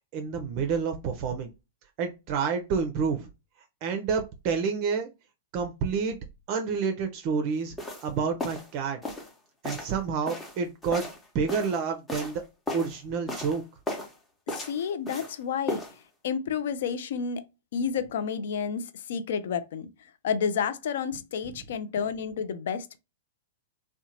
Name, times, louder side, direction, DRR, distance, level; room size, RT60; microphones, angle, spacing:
voice 1, 0.1-1.5 2.0-3.3 3.8-5.1 5.5-6.2 6.5-7.7 8.0-9.0 9.6-11.1 11.3-12.4 12.7-13.6, right 5 dB, 45° right, 0.4 m, -29 dB
sound 1, 7.8-8.1 8.4-8.7 9.0-9.3 9.6-9.9 10.3-11.8 12.1-12.4 12.7-13.0 13.3-13.6 13.9-14.1 14.5-15.3 15.7-15.9, left 1 dB, 15° left, 0.8 m, -35 dB
voice 2, 14.5-15.8 16.2-17.4 17.7-19.9 20.2-23.0, left 7 dB, 65° left, 0.4 m, -30 dB
2.7 x 2.1 x 2.7 m
hypercardioid pair, 105°, 0 cm